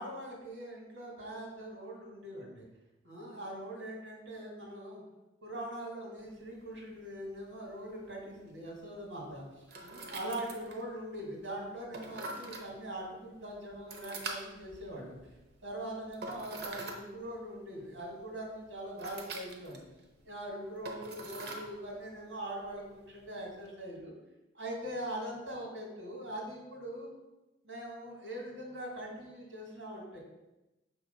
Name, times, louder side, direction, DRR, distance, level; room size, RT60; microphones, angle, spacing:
voice 1, 0.0-2.7 3.0-5.0 5.4-15.2 15.6-19.8 20.2-24.1 24.5-27.1 27.6-30.2, right 1 dB, 85° right, -1 dB, 2.2 m, -42 dB
sound 1, 6.2-23.7, right 2 dB, 55° right, 0.8 m, -47 dB
6.4 x 3.4 x 5.2 m, 1.0 s
head